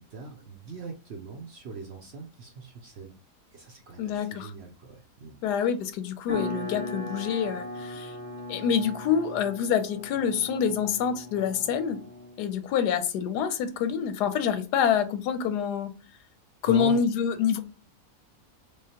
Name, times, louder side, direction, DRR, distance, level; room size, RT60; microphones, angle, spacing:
voice 1, 0.0-3.1 3.5-5.4 16.7-17.0, right 4 dB, 65° right, 0.6 m, -41 dB
voice 2, 4.0-4.5 5.4-8.1 8.5-12.0 12.4-15.9 16.6-17.6, left 7 dB, 85° left, 1.2 m, -26 dB
sound 1, 6.3-12.5, left 1 dB, 10° left, 0.9 m, -38 dB
3.7 x 3.4 x 2.8 m
omnidirectional pair, 1.7 m